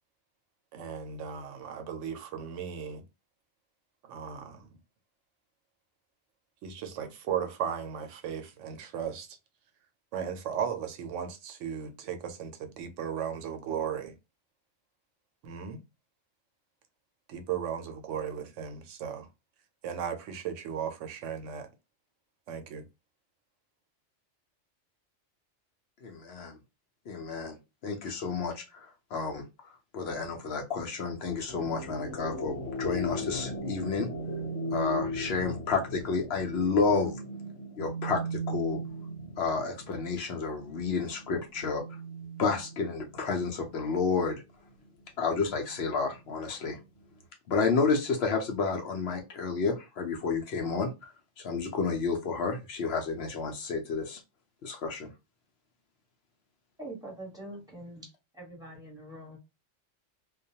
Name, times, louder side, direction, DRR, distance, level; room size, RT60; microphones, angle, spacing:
voice 1, 0.7-3.0 4.1-4.7 6.6-9.3 10.1-14.1 15.4-15.8 17.3-19.3 19.8-21.7 22.5-22.8, right 8 dB, 85° right, 0.9 m, -36 dB
voice 2, 26.0-26.5 27.1-27.5 27.8-28.6 29.1-29.4 29.9-34.1 34.7-37.1 37.8-38.8 39.4-41.8 42.4-44.4 45.2-46.8 47.5-50.9 51.4-54.2 54.6-55.1, left 4 dB, 65° left, 0.8 m, -30 dB
sound 1, 31.5-43.8 44.2-47.2, equal, 85° left, 1.0 m, -38 dB
voice 3, 56.8-58.0 58.3-59.4, right 1 dB, 5° right, 1.0 m, -43 dB
2.3 x 2.2 x 2.7 m
omnidirectional pair, 1.2 m